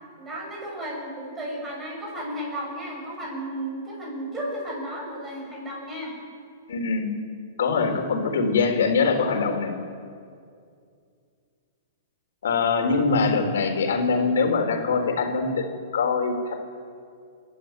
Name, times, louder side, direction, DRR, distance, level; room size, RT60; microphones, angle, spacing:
voice 1, 0.2-6.1 7.7-8.1, right 1 dB, 10° right, -3 dB, 7.0 m, -34 dB
voice 2, 6.7-7.1 7.6-9.7 12.4-15.7 15.9-16.3, left 4 dB, 80° left, 4 dB, 4.5 m, -23 dB
29.0 x 12.5 x 9.2 m, 2.3 s
hypercardioid pair, 170°, 0 cm